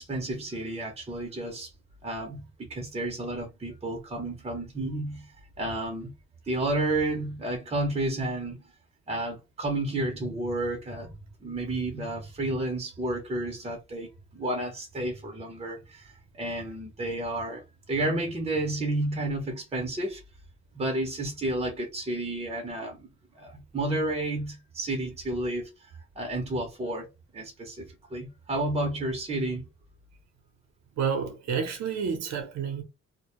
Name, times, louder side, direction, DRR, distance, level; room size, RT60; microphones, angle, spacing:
voice 1, 0.0-1.7 2.0-6.1 6.5-8.6 9.1-11.1 11.4-20.2 20.7-23.1 23.3-27.1 27.3-29.7, right 1 dB, 20° right, 0.7 m, -31 dB
voice 2, 31.0-32.8, right 6 dB, 60° right, 0.7 m, -29 dB
2.1 x 2.1 x 2.9 m
cardioid pair, 90°, 30 cm